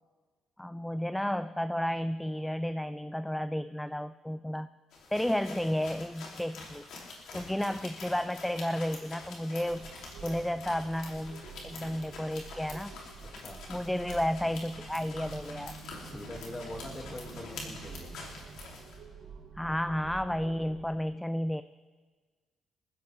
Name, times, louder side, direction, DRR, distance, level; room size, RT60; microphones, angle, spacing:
voice 1, 0.6-4.7 5.1-6.8 7.3-9.9 10.2-12.9 13.7-15.7 19.6-21.6, left 1 dB, 5° left, 13 dB, 0.3 m, -32 dB
sound 1, 4.9-19.0, left 3 dB, 80° left, 3.3 m, -46 dB
sound 2, 9.7-20.9, right 5 dB, 80° right, 2.3 m, -48 dB
voice 2, 16.0-18.2, left 1 dB, 20° left, 1 dB, 2.5 m, -43 dB
20.5 x 15.0 x 3.5 m, 1.4 s
cardioid pair, 95°, 0 cm